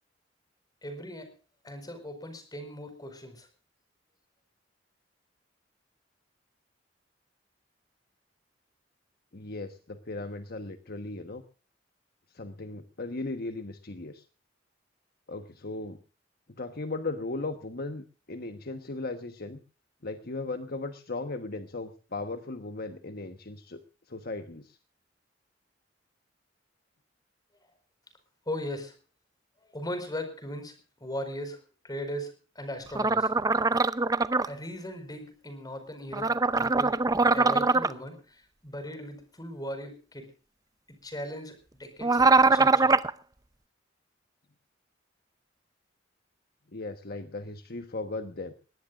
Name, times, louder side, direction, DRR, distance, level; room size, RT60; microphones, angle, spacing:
voice 1, 0.8-1.3 1.6-3.5 28.5-29.0 29.7-33.3 34.4-37.0 37.3-40.3 41.0-42.9, equal, 20° left, 8 dB, 4.8 m, -38 dB
voice 2, 9.3-11.4 12.3-14.2 15.3-16.0 16.6-19.6 20.0-23.8 24.1-24.8 46.7-48.5, left 2 dB, 55° left, 8 dB, 1.3 m, -37 dB
sound 1, 32.9-34.5 36.1-37.9 42.0-43.1, right 3 dB, 20° right, 0.6 m, -22 dB
21.0 x 18.0 x 2.5 m, 0.35 s
head